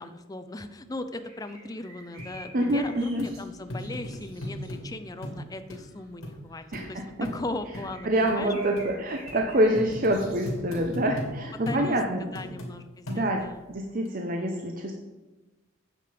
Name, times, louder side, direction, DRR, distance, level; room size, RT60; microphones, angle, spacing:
voice 1, 0.0-8.5 11.7-13.6, left 2 dB, 15° left, 8 dB, 0.5 m, -38 dB
sound 1, 1.1-4.7 5.1-5.4 5.7-6.1 6.5-6.9 7.3-11.0, right 1 dB, 85° right, 3.6 m, -50 dB
sound 2, 2.2-2.3 2.7-2.8 3.2-3.3 3.7-4.8 5.2-5.4 5.7-5.8 6.2-6.3 6.7-6.9 7.2-7.4 7.7-7.9 8.3-8.4 8.8-8.9 9.3-9.4 9.7-11.3 11.7-11.8 12.4-12.7 13.1-13.5 14.1-14.2, left 1 dB, 85° left, 2.5 m, -36 dB
voice 2, 2.5-3.3 6.7-7.3 8.0-12.2 13.1-13.4 13.7-14.9, right 1 dB, 40° right, 2 dB, 0.8 m, -26 dB
9.1 x 7.6 x 5.1 m, 1.1 s
head